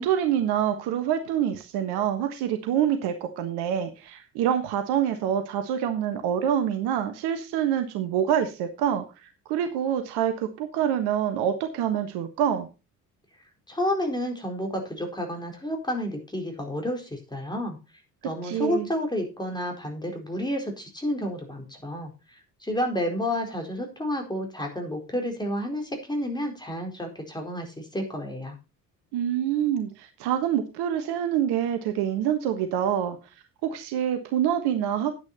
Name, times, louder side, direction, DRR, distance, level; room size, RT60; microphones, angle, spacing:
voice 1, 0.0-9.0 9.5-12.7 18.4-18.9 29.1-33.2 33.6-35.1, right 9 dB, 55° right, 8 dB, 1.5 m, -26 dB
voice 2, 13.7-17.8 18.2-22.1 22.6-28.6, left 1 dB, 10° left, 3 dB, 4.5 m, -30 dB
10.5 x 9.5 x 4.2 m, 0.29 s
figure-of-eight pair, 50°, 46 cm